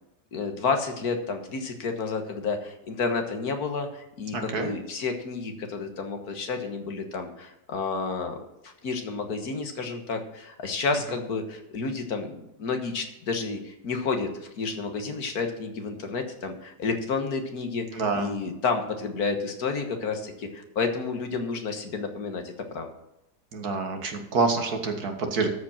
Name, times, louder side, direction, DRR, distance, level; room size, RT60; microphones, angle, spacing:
voice 1, 0.3-8.4 8.6-22.9, left 4 dB, 65° left, 6 dB, 1.8 m, -30 dB
voice 2, 4.3-4.7 17.9-18.3 23.5-25.5, right 4 dB, 65° right, 5 dB, 2.0 m, -27 dB
12.5 x 5.2 x 7.2 m, 0.88 s
omnidirectional pair, 1.8 m